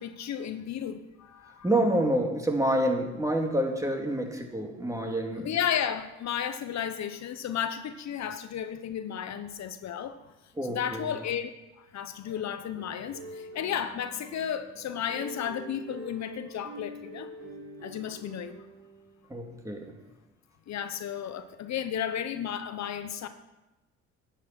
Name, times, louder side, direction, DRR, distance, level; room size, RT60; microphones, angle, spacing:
voice 1, 0.0-1.7 5.3-10.2 10.6-11.5 11.8-17.3 17.8-18.6 20.7-23.3, left 9 dB, 65° left, 10 dB, 0.8 m, -33 dB
voice 2, 1.6-5.5 10.6-11.1 19.3-19.9, right 1 dB, 10° right, 2 dB, 2.3 m, -28 dB
sound 1, 12.2-19.2 19.8-20.1, right 1 dB, 55° right, 3.8 m, -45 dB
11.0 x 10.0 x 5.9 m, 1.0 s
cardioid pair, 90°, 30 cm